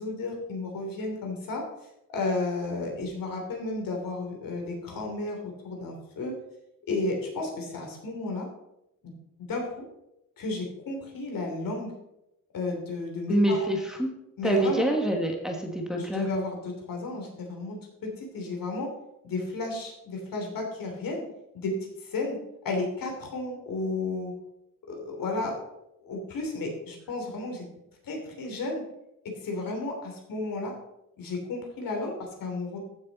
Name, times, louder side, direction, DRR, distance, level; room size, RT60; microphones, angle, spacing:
voice 1, 0.0-1.6 2.1-6.3 6.9-8.5 9.0-9.1 9.5-9.8 10.4-11.9 12.5-13.7 14.4-14.8 16.0-18.9 19.2-21.2 21.5-22.4 22.6-24.3 24.9-25.6 26.0-27.6 28.0-28.8 29.4-30.7 31.2-32.8, left 2 dB, 75° left, 1 dB, 3.2 m, -33 dB
voice 2, 13.3-14.1 14.4-16.3, equal, ahead, 1 dB, 1.4 m, -26 dB
14.5 x 6.6 x 4.1 m, 0.89 s
wide cardioid pair, 145°, 34 cm